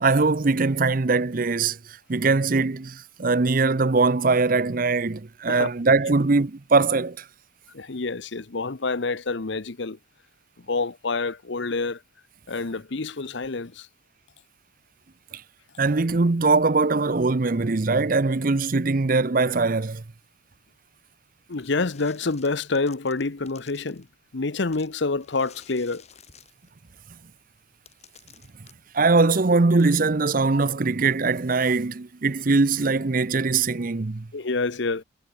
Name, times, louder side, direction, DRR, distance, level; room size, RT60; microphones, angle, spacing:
voice 1, 0.0-7.2 15.3-15.4 15.8-20.0 28.9-34.3, right 3 dB, 45° right, 0.7 m, -21 dB
voice 2, 7.7-10.0 10.7-12.0 12.5-13.9 21.5-24.1 24.3-26.0 34.3-35.0, left 3 dB, 60° left, 0.9 m, -27 dB
sound 1, 21.5-24.1 24.7-27.0 27.6-27.7 27.9-28.7, left 7 dB, 30° left, 5.2 m, -52 dB
head